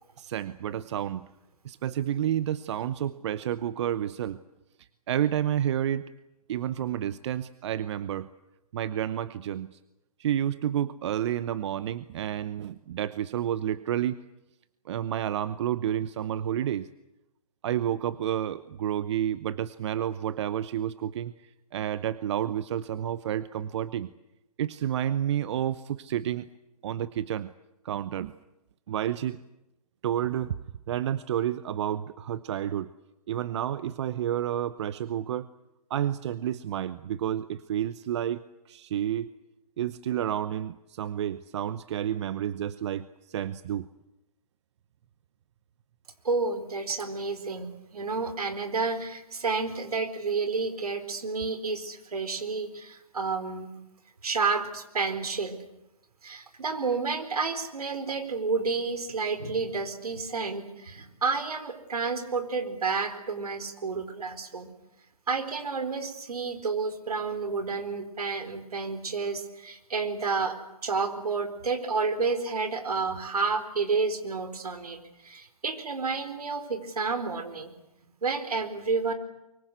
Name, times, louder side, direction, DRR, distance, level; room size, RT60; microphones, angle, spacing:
voice 1, 0.2-1.3 1.6-4.4 5.1-6.0 6.5-8.3 8.7-9.8 10.2-14.2 14.9-16.9 17.6-21.3 21.7-24.1 24.6-26.5 26.8-27.5 27.8-28.3 28.9-29.4 30.0-30.5 30.9-32.9 33.3-35.5 35.9-38.4 38.7-39.3 39.8-43.9, right 10 dB, 50° right, 15 dB, 0.9 m, -30 dB
voice 2, 46.2-53.7 54.2-55.6 56.2-64.7 65.3-70.6 70.8-77.7 78.2-79.1, right 4 dB, 75° right, 9 dB, 4.4 m, -30 dB
23.5 x 23.0 x 8.2 m, 0.92 s
figure-of-eight pair, 135°, 19 cm